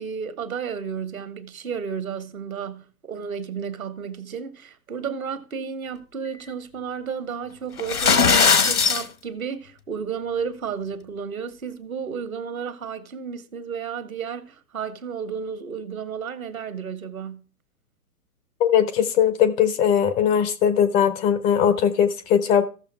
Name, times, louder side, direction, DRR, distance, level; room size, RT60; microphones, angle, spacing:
voice 1, 0.0-17.5, right 6 dB, 65° right, 1.7 m, -32 dB
sound 1, 7.8-9.0, left 5 dB, 75° left, 1.6 m, -18 dB
voice 2, 18.6-22.7, left 8 dB, 15° left, 0.6 m, -20 dB
15.0 x 6.7 x 4.5 m
figure-of-eight pair, 115°, 45 cm